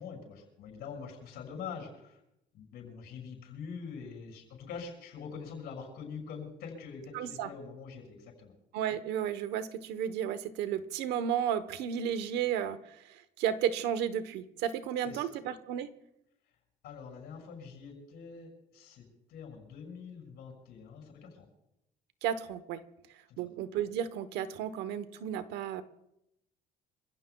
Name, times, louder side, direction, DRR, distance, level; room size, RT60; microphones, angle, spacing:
voice 1, 0.0-2.2 2.5-8.5 15.0-15.4 16.8-21.4 23.3-23.5, left 5 dB, 80° left, 1 dB, 5.9 m, -45 dB
voice 2, 7.1-7.5 8.7-15.9 22.2-22.8 23.4-25.8, right 9 dB, 90° right, 13 dB, 1.0 m, -33 dB
27.0 x 16.0 x 2.3 m, 0.84 s
cardioid pair, 110°, 17 cm